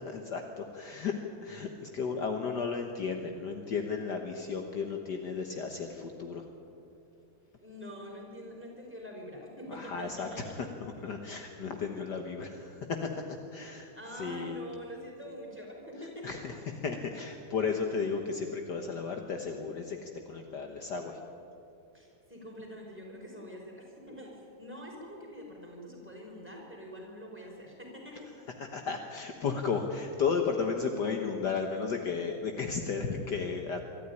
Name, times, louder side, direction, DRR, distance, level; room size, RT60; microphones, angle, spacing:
voice 1, 0.1-1.2 1.4-6.4 9.7-10.3 10.6-13.1 13.5-13.9 14.2-14.6 16.2-16.5 16.8-21.2 28.7-33.8, left 5 dB, 55° left, 4 dB, 1.8 m, -34 dB
voice 2, 7.6-10.7 13.6-16.5 21.9-28.3, equal, 5° right, -2 dB, 5.5 m, -45 dB
24.5 x 13.0 x 9.9 m, 2.8 s
omnidirectional pair, 2.2 m